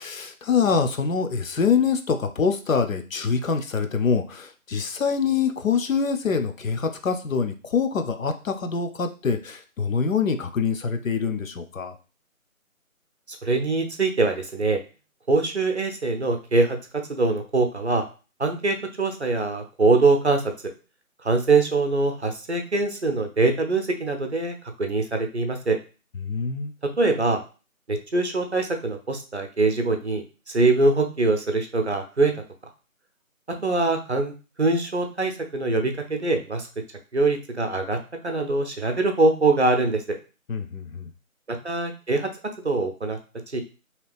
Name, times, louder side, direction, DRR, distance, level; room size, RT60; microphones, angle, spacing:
voice 1, 0.0-12.0 26.2-26.7 40.5-41.1, left 5 dB, 70° left, 7 dB, 0.5 m, -25 dB
voice 2, 13.3-14.8 15.3-18.1 18.4-20.4 21.2-25.8 27.0-27.4 27.9-32.3 33.6-36.7 37.1-38.0 38.2-40.0 41.5-42.3 42.6-43.2 43.5-43.6, right 3 dB, 55° right, 5 dB, 0.5 m, -23 dB
2.8 x 2.4 x 3.3 m, 0.34 s
figure-of-eight pair, 175°, 42 cm